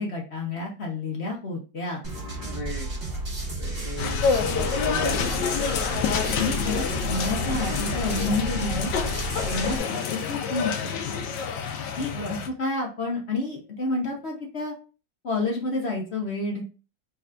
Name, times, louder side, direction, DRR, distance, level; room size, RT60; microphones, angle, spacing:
voice 1, 0.0-2.0 6.3-8.9 9.5-10.9 12.0-12.1 12.6-14.7 15.2-16.7, left 2 dB, 45° left, -1 dB, 0.9 m, -29 dB
sound 1, 2.0-9.8, right 2 dB, 40° right, 2.3 m, -32 dB
voice 2, 2.4-5.4 9.9-10.1 12.1-12.4, right 1 dB, 20° right, -3 dB, 0.9 m, -36 dB
sound 2, 4.0-12.5, left 6 dB, 75° left, 1.3 m, -28 dB
6.0 x 3.3 x 2.4 m, 0.34 s
omnidirectional pair, 2.0 m